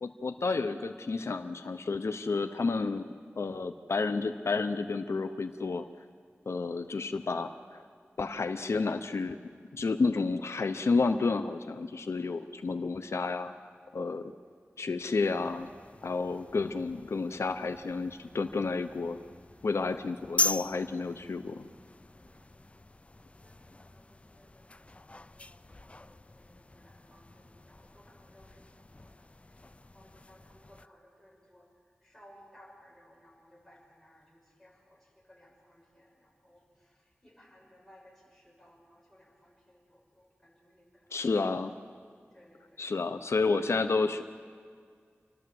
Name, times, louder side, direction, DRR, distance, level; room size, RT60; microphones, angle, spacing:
voice 1, 0.0-3.1 3.4-5.9 6.5-7.8 8.2-9.4 9.7-13.5 13.9-14.3 14.8-15.7 16.0-19.2 19.6-21.7 41.1-41.8 42.8-44.2, left 4 dB, 85° left, 9 dB, 0.7 m, -31 dB
sound 1, 15.2-30.9, left 2 dB, 30° left, 0.4 m, -41 dB
voice 2, 16.1-16.7 22.2-22.9 23.1-41.3 42.3-42.9, equal, 10° left, -3 dB, 7.1 m, -61 dB
29.0 x 12.5 x 7.7 m, 2.1 s
wide cardioid pair, 60°, 5 cm